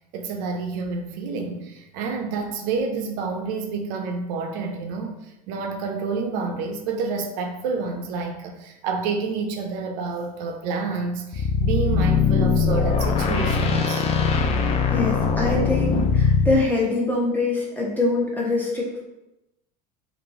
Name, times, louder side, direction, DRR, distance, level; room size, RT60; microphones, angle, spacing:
voice 1, 0.1-14.0, right 4 dB, 65° right, 4 dB, 0.5 m, -29 dB
sound 1, 11.3-16.6, left 5 dB, 30° left, 0.4 m, -21 dB
voice 2, 14.9-19.0, left 2 dB, 10° left, -4 dB, 0.9 m, -24 dB
3.6 x 2.4 x 2.7 m, 0.92 s
supercardioid pair, 115°, 20 cm